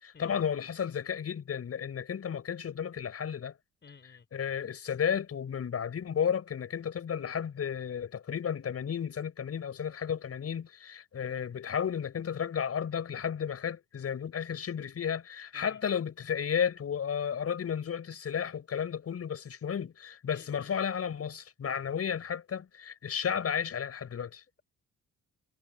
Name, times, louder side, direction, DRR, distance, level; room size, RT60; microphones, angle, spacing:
voice 1, 0.0-3.5 4.3-24.4, left 8 dB, 50° left, 6.9 m, -33 dB
voice 2, 3.8-4.2 15.5-15.8 20.3-20.7 21.7-21.8, left 5 dB, 35° left, 4.3 m, -54 dB
cardioid pair, 90°, 30 cm